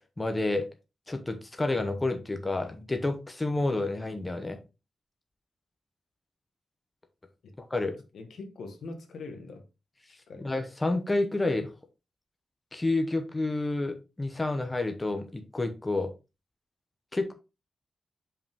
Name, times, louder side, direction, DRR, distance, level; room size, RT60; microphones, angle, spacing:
voice 1, 0.2-0.7 1.1-4.6 7.6-8.0 10.4-11.7 12.7-16.1 17.1-17.3, left 2 dB, 15° left, 0.8 m, -29 dB
voice 2, 8.1-9.7 10.1-10.5, left 3 dB, 80° left, 1.3 m, -43 dB
5.5 x 4.9 x 3.5 m
wide cardioid pair, 175°, 0 cm